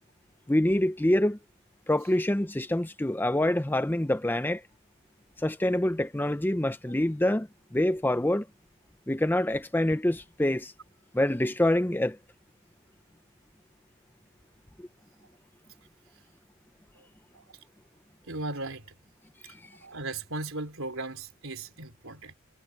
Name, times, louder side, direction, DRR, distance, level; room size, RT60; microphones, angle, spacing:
voice 1, 0.5-1.4 1.9-4.6 5.4-8.5 9.1-10.7 11.1-12.2 14.8-14.9 19.5-19.6, left 1 dB, 10° left, 0.5 m, -26 dB
voice 2, 18.3-18.8 19.8-22.3, right 2 dB, 65° right, 4.0 m, -37 dB
head